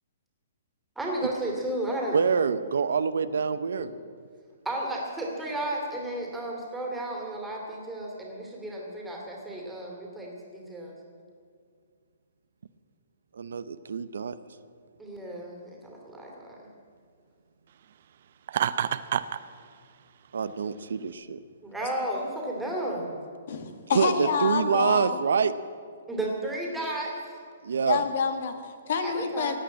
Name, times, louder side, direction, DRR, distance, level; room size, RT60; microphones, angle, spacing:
voice 1, 1.0-2.2 3.8-3.9 4.6-11.0 15.0-16.6 21.6-23.2 26.1-27.4 29.0-29.6, right 1 dB, 5° right, -2 dB, 2.7 m, -33 dB
voice 2, 2.1-3.9 13.3-14.3 20.3-21.4 23.9-25.5 27.6-28.0, right 6 dB, 85° right, 13 dB, 0.8 m, -26 dB
Laughter, 18.5-19.4, right 9 dB, 50° right, 0.6 m, -27 dB
voice 3, 23.5-25.2 27.9-29.5, left 5 dB, 55° left, 7 dB, 1.8 m, -28 dB
17.0 x 8.9 x 8.7 m, 2.1 s
hypercardioid pair, 165°, 0 cm